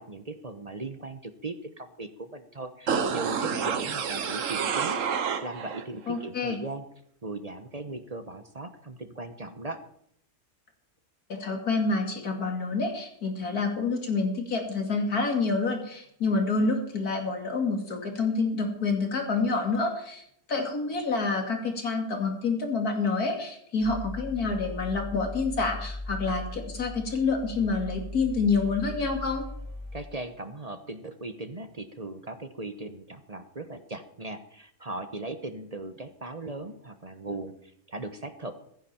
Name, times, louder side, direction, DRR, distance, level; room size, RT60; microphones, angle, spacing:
voice 1, 0.0-5.0 5.4-6.8 7.2-9.8 29.9-38.6, right 2 dB, 30° right, 9 dB, 1.0 m, -38 dB
sound 1, 2.9-5.9 6.2-6.3, right 6 dB, 60° right, 1.4 m, -29 dB
voice 2, 6.1-6.6 11.3-20.2 20.5-29.4, left 4 dB, 75° left, 4 dB, 2.9 m, -28 dB
sound 2, 23.8-30.0, left 2 dB, 50° left, 6.8 m, -39 dB
15.5 x 14.5 x 4.4 m, 0.70 s
omnidirectional pair, 1.6 m